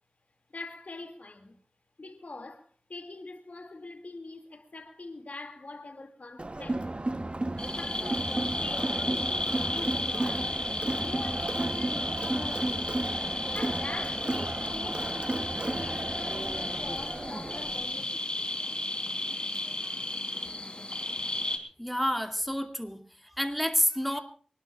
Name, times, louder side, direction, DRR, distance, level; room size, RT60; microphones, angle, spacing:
voice 1, 0.5-1.6 2.0-6.9 7.8-9.1 9.7-10.5 11.0-18.6, left 3 dB, 90° left, 2.4 m, -44 dB
Crowd, 6.4-17.9, right 2 dB, 45° right, 1.0 m, -33 dB
sound 1, 7.6-21.6, left 2 dB, 40° left, 3.5 m, -34 dB
voice 2, 21.8-24.2, equal, ahead, 2.4 m, -29 dB
24.0 x 19.5 x 2.4 m
wide cardioid pair, 45°, 2 cm